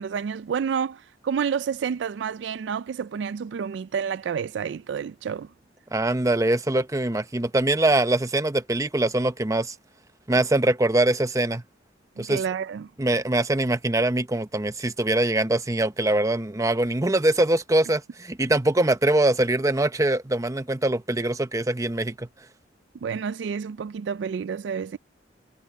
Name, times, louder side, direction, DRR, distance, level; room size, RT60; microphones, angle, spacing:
voice 1, 0.0-5.5 12.2-12.9 23.0-25.0, right 7 dB, 70° right, 0.3 m, -29 dB
voice 2, 5.9-9.7 10.3-11.6 12.2-12.4 13.0-22.3, right 1 dB, 15° right, 0.8 m, -23 dB
head